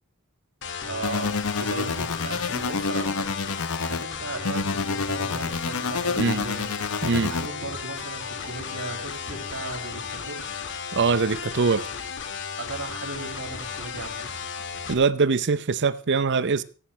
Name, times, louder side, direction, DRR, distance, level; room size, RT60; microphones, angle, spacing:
sound 1, 0.6-14.9, left 6 dB, 60° left, 2.1 m, -35 dB
voice 1, 0.8-3.3 3.6-6.7 7.0-10.5 12.6-14.2, right 2 dB, 75° right, 6.6 m, -37 dB
sound 2, 1.0-4.0 4.4-7.5, left 4 dB, 80° left, 0.8 m, -28 dB
voice 2, 10.9-11.8 14.9-16.6, right 4 dB, 55° right, 0.7 m, -22 dB
17.5 x 15.0 x 3.3 m
head